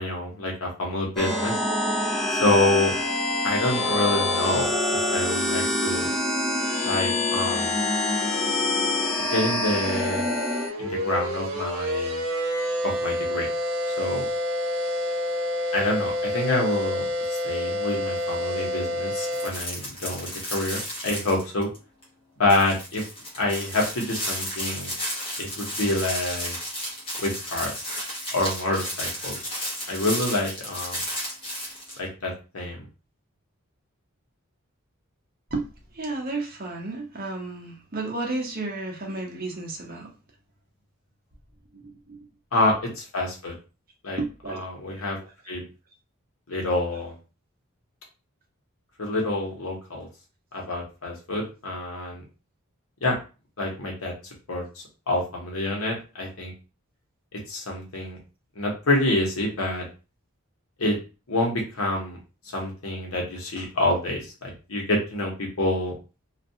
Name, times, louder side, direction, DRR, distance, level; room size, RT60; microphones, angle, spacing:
voice 1, 0.0-1.6 2.3-2.9 3.4-6.1 6.8-7.8 9.3-10.3 10.8-12.2 12.8-13.5 13.9-14.3 15.7-21.7 22.4-23.0 23.4-24.9 25.4-26.6 27.2-27.8 28.3-29.5 29.9-31.0 32.0-32.9 42.5-43.5 44.0-44.2 44.5-45.2 45.5-45.7 46.5-47.2 49.0-50.1 50.5-52.2 53.0-53.2 53.6-56.5 57.3-58.2 58.6-59.9 60.8-61.0 61.3-62.2 62.5-65.9, left 1 dB, 80° left, 0 dB, 1.0 m, -27 dB
sound 1, 1.2-10.7, left 2 dB, ahead, 0.4 m, -25 dB
sound 2, 9.4-19.5, left 1 dB, 80° right, 0.6 m, -28 dB
sound 3, 19.2-21.8 22.0-22.1 22.5-32.0, equal, 25° left, 0.8 m, -33 dB
voice 2, 35.9-40.1 41.7-42.2 42.8-42.9 44.2-44.6 44.9-45.1 46.9-47.0, right 2 dB, 45° right, 0 dB, 0.7 m, -32 dB
2.4 x 2.2 x 2.7 m, 0.32 s
head